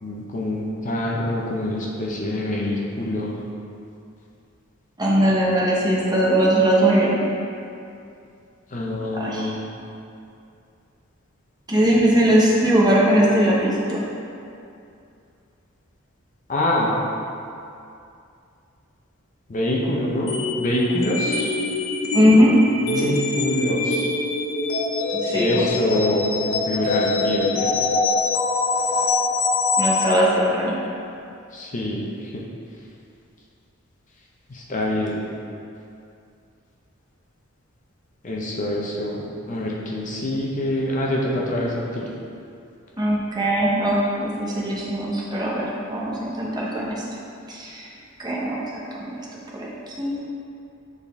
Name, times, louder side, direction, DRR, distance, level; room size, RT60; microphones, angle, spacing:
voice 1, 0.0-3.4 8.7-9.6 16.5-17.0 19.5-21.6 22.5-22.6 22.9-24.1 25.3-27.7 31.5-32.4 34.5-35.2 38.2-42.1, left 1 dB, 40° left, -3 dB, 0.7 m, -25 dB
voice 2, 5.0-7.2 9.2-9.5 11.7-14.0 22.1-22.6 22.9-23.1 25.1-26.1 29.8-30.7 43.0-47.0 47.5-47.9 48.2-48.6 48.9-49.1 49.5-49.7 50.0-50.2, equal, 20° right, -5 dB, 0.9 m, -20 dB
sound 1, 20.3-30.2, left 3 dB, 80° left, 0.7 m, -24 dB
8.0 x 4.1 x 3.5 m, 2.6 s
head